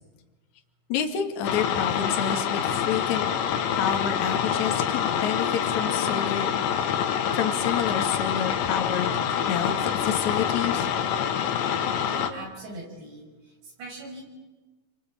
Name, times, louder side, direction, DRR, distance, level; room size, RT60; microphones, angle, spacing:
voice 1, 0.9-3.3 3.7-6.5 7.3-10.9, left 8 dB, 50° left, 4 dB, 2.9 m, -29 dB
sound 1, 1.4-12.3, left 8 dB, 80° left, 3.8 m, -26 dB
voice 2, 12.1-13.3 13.6-14.2, right 2 dB, 75° right, 1 dB, 8.2 m, -40 dB
29.0 x 23.5 x 8.7 m, 1.2 s
omnidirectional pair, 5.1 m